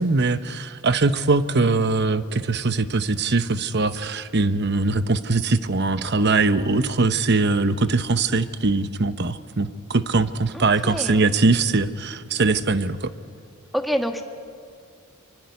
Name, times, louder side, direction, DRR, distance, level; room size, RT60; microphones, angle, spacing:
voice 1, 0.0-13.1, right 3 dB, 50° right, 12 dB, 0.9 m, -21 dB
voice 2, 10.5-11.2 13.7-14.2, equal, ahead, 5 dB, 1.5 m, -27 dB
25.0 x 24.0 x 9.5 m, 2.2 s
head